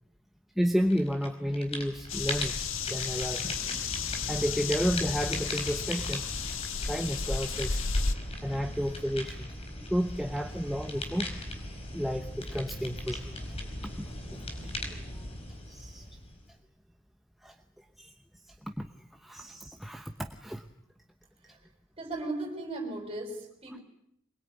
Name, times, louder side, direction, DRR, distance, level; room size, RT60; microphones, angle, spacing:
voice 1, 0.6-2.6 2.9-3.8 4.3-6.2 6.9-7.8 8.4-9.5 9.8-11.3 11.9-13.4 14.0-14.5 15.1-15.2 15.7-16.1 17.4-17.5 18.0-18.1 18.5-18.9 19.2-20.7, equal, ahead, 4 dB, 1.0 m, -32 dB
sound 1, 0.9-1.3 1.5-16.6, left 1 dB, 30° left, 4.9 m, -39 dB
sound 2, 2.1-8.1, left 5 dB, 75° left, 1.7 m, -33 dB
voice 2, 22.0-23.8, right 2 dB, 25° right, 4 dB, 6.4 m, -36 dB
24.0 x 21.5 x 9.5 m, 0.73 s
head